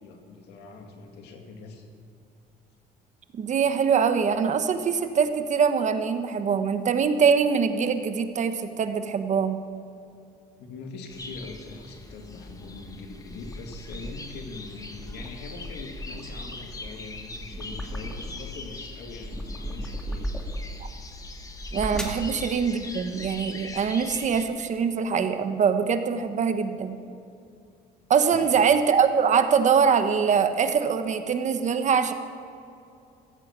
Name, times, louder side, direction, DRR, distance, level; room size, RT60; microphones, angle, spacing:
voice 1, 0.0-1.8 10.6-20.3 28.3-28.5, left 3 dB, 85° left, 4 dB, 2.4 m, -42 dB
voice 2, 3.3-9.6 21.7-27.0 28.1-32.1, right 6 dB, 45° right, 8 dB, 1.3 m, -23 dB
sound 1, 11.1-24.5, left 2 dB, 20° left, 1.6 m, -42 dB
sound 2, 12.5-14.4 14.8-18.6 19.0-20.8 21.5-22.3, equal, 5° left, 2.2 m, -36 dB
15.5 x 14.5 x 6.1 m, 2.7 s
cardioid pair, 110°, 17 cm